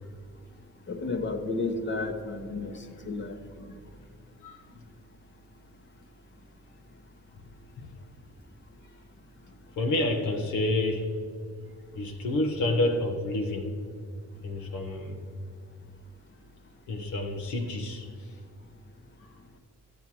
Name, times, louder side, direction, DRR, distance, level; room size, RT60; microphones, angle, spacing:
voice 1, 0.9-3.4, left 3 dB, 40° left, 6 dB, 1.2 m, -32 dB
voice 2, 4.4-4.8 7.3-7.4 7.8-7.9 9.8-11.1 11.9-13.7 14.4-15.2 16.9-18.4, left 2 dB, 75° left, 2 dB, 1.2 m, -29 dB
11.5 x 7.7 x 4.6 m, 2.1 s
cardioid pair, 90°, 30 cm